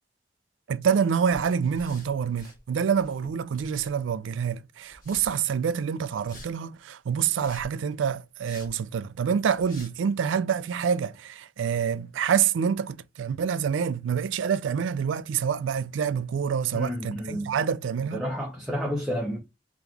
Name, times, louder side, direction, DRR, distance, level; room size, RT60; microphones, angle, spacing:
voice 1, 0.7-18.2, right 7 dB, 90° right, 0.3 m, -27 dB
sound 1, 1.3-2.6 2.9-4.2 4.9-5.3 6.2-6.5 7.2-7.8 8.4-8.7 9.2-9.3 9.6-9.9, left 1 dB, 45° left, 1.4 m, -47 dB
voice 2, 16.7-17.6 18.1-19.4, equal, ahead, 0.7 m, -30 dB
3.5 x 2.9 x 3.4 m
head